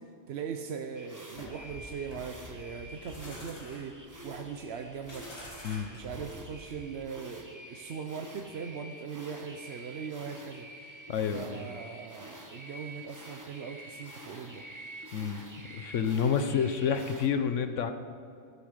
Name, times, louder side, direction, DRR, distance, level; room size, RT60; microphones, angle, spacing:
voice 1, 0.3-5.5 5.9-10.7 11.3-14.7, right 6 dB, 65° right, 5 dB, 0.9 m, -40 dB
sound 1, 0.9-17.3, right 1 dB, 15° right, 1.1 m, -48 dB
sound 2, 1.3-7.0, left 1 dB, 60° left, 3.4 m, -47 dB
voice 2, 11.1-11.6 15.1-17.9, left 7 dB, 80° left, 9 dB, 1.2 m, -29 dB
13.0 x 12.0 x 5.1 m, 2.5 s
omnidirectional pair, 1.3 m